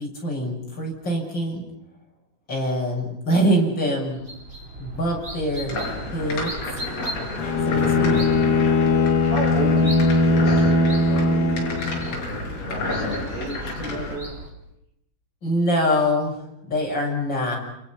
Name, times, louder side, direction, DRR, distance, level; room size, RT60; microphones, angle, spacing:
voice 1, 0.0-1.6 2.5-4.2 4.8-5.8 6.1-6.5 7.7-8.2 15.4-17.6, equal, 25° left, -2 dB, 7.9 m, -24 dB
sound 1, 4.1-14.5, right 1 dB, 15° right, 3.5 m, -37 dB
sound 2, 5.7-14.2, left 2 dB, 40° left, 7.3 m, -31 dB
Bowed string instrument, 7.4-12.2, left 3 dB, 60° left, 3.7 m, -20 dB
voice 2, 8.8-11.8 12.6-14.4, right 2 dB, 35° right, -2 dB, 7.7 m, -34 dB
29.5 x 28.5 x 6.0 m, 0.84 s
omnidirectional pair, 4.4 m